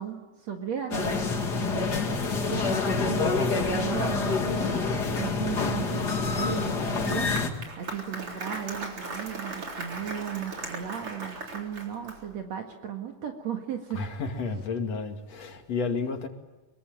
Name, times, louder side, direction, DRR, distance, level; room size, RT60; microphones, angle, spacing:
voice 1, 0.0-14.1, right 8 dB, 65° right, 3 dB, 3.1 m, -36 dB
sound 1, 0.9-7.5, left 4 dB, 35° left, 2.5 m, -27 dB
Applause, 6.9-12.4, right 3 dB, 45° right, 4.6 m, -38 dB
voice 2, 13.9-16.3, left 4 dB, 60° left, 4 dB, 3.5 m, -31 dB
25.5 x 23.0 x 9.0 m, 1.1 s
omnidirectional pair, 3.4 m